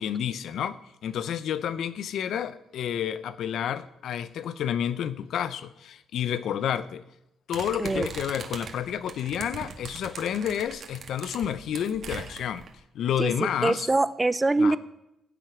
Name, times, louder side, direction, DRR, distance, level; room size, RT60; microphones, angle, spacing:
voice 1, 0.0-7.0 7.5-12.7 12.9-13.9 14.6-14.8, left 9 dB, 70° left, 0.6 m, -30 dB
sound 1, 7.5-12.7, right 6 dB, 55° right, 1.8 m, -40 dB
voice 2, 13.6-14.8, right 2 dB, 20° right, 0.6 m, -23 dB
16.5 x 7.8 x 5.9 m
cardioid pair, 90°, 0 cm